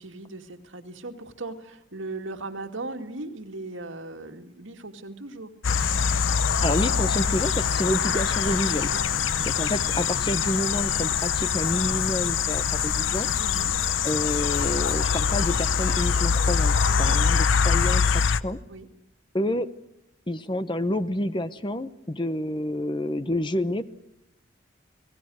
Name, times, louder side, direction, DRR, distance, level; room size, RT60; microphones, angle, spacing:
voice 1, 0.0-5.5 8.9-9.3 13.4-13.7 16.9-17.1 18.7-18.9, right 2 dB, 85° right, 5 dB, 2.3 m, -38 dB
sound 1, 5.6-18.4, left 6 dB, 85° left, 0.8 m, -24 dB
voice 2, 6.6-8.9 9.4-13.3 14.0-18.6 19.3-19.7 20.3-23.9, left 1 dB, 25° left, 13 dB, 0.9 m, -28 dB
30.0 x 19.0 x 6.3 m, 0.88 s
head